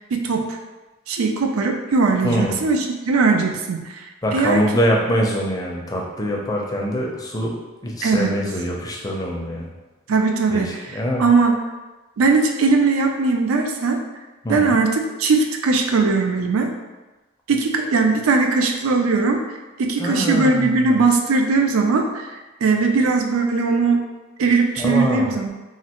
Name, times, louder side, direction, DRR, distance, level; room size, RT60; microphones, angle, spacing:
voice 1, 0.1-0.6 1.1-4.6 8.0-8.4 10.1-10.8 11.2-11.6 12.2-14.0 14.5-16.7 17.5-19.4 19.8-24.0 24.4-25.5, right 4 dB, 85° right, 4 dB, 0.4 m, -19 dB
voice 2, 2.2-2.6 4.2-9.7 10.5-11.3 14.4-14.8 20.0-21.0 24.8-25.4, equal, 20° left, -2 dB, 0.4 m, -24 dB
3.2 x 2.3 x 2.9 m, 1.1 s
head